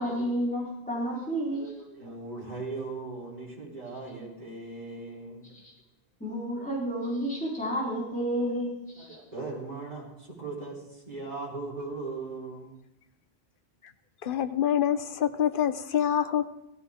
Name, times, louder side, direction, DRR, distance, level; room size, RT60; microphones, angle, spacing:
voice 1, 0.0-1.6 5.5-5.7 6.2-9.2, equal, 5° left, -5 dB, 4.4 m, -31 dB
voice 2, 1.5-5.5 8.5-8.6 9.0-12.7, right 3 dB, 40° right, -5 dB, 4.7 m, -39 dB
voice 3, 14.2-16.5, left 9 dB, 60° left, 11 dB, 0.9 m, -26 dB
16.5 x 14.5 x 3.8 m, 0.90 s
omnidirectional pair, 1.0 m